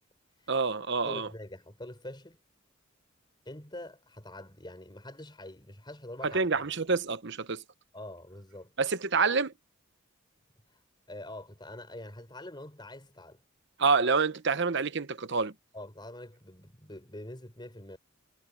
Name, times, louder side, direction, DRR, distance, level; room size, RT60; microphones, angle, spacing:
voice 1, 0.5-1.3 6.2-7.6 8.8-9.5 13.8-15.5, right 4 dB, 60° right, 1.0 m, -27 dB
voice 2, 1.0-2.4 3.4-6.5 7.9-8.7 11.1-13.4 15.7-18.0, left 1 dB, 20° left, 4.5 m, -45 dB
head